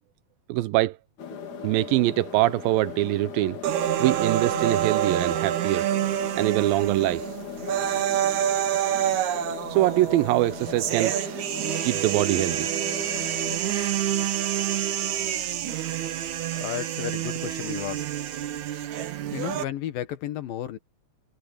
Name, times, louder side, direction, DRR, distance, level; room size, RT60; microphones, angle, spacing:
voice 1, 0.5-1.0 1.5-3.6 4.0-5.9 6.4-7.2 9.7-11.1 11.8-12.7, right 17 dB, 90° right, 2.5 m, -23 dB
sound 1, 1.2-13.6, left 8 dB, 60° left, 4.0 m, -39 dB
sound 2, 3.6-19.6, right 11 dB, 65° right, 2.4 m, -27 dB
voice 2, 16.6-18.1 19.3-20.8, left 12 dB, 85° left, 3.1 m, -33 dB
omnidirectional pair, 4.0 m